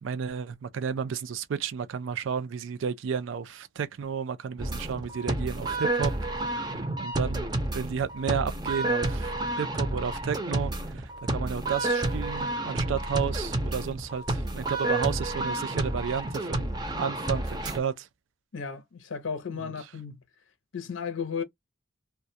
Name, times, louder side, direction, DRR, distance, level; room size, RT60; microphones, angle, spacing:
voice 1, 0.0-6.1 7.0-18.1 19.6-19.7, right 7 dB, 80° right, 0.4 m, -32 dB
sound 1, 4.6-17.8, right 1 dB, 20° right, 0.5 m, -30 dB
voice 2, 18.5-20.2 20.7-21.4, left 6 dB, 85° left, 0.6 m, -34 dB
2.2 x 2.2 x 2.6 m
head